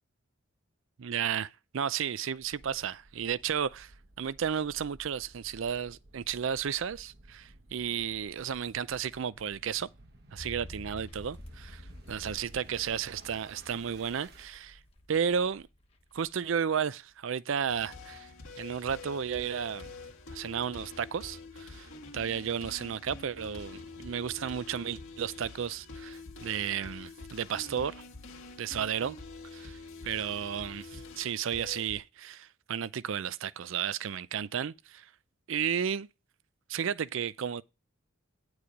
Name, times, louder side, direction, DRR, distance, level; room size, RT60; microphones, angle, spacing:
voice 1, 1.0-3.9 4.2-9.9 10.3-11.8 12.1-14.8 15.1-15.7 16.1-18.3 18.6-19.9 20.3-21.9 22.1-27.9 28.6-29.2 29.5-29.8 30.0-35.1 35.5-36.1 36.7-37.6, right 7 dB, 65° right, 0.4 m, -33 dB
sound 1, 2.4-14.5, right 2 dB, 50° right, 1.2 m, -56 dB
sound 2, 10.4-16.9 17.1-17.2, left 1 dB, 25° left, 1.1 m, -49 dB
sound 3, 17.7-32.0, left 3 dB, 75° left, 1.9 m, -46 dB
10.0 x 4.8 x 5.2 m
head